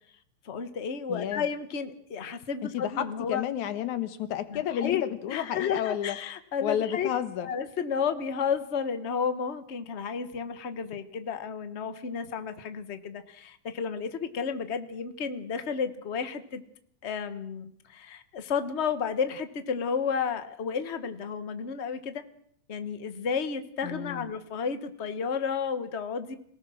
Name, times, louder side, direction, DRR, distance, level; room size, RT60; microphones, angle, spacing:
voice 1, 0.4-3.4 4.5-5.0 5.3-7.1 7.4-16.6 17.0-22.2 22.7-26.3, left 6 dB, 60° left, 9 dB, 0.7 m, -32 dB
voice 2, 1.1-1.4 2.6-6.2 6.6-7.5 23.8-24.3, left 10 dB, 75° left, 10 dB, 2.7 m, -31 dB
26.0 x 18.5 x 6.3 m, 0.66 s
omnidirectional pair, 3.4 m